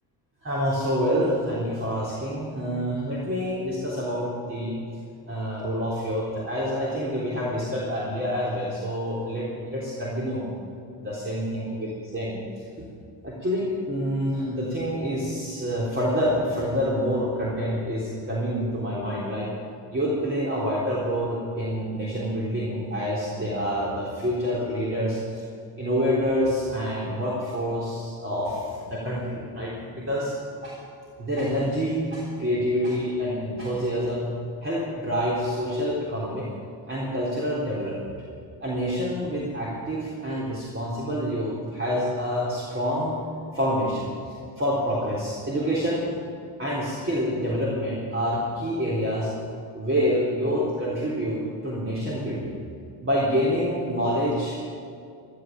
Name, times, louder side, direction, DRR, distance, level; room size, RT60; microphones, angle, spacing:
voice 1, 0.4-4.8 5.3-10.5 11.0-12.4 13.2-19.5 19.9-25.4 25.8-30.3 30.6-30.8 31.2-34.3 34.6-36.5 36.9-38.1 38.6-43.2 43.5-46.2 46.6-49.3 49.7-52.5 53.0-54.7, equal, 25° right, -5 dB, 3.6 m, -27 dB
13.5 x 13.5 x 7.7 m, 2.4 s
cardioid pair, 90°, 44 cm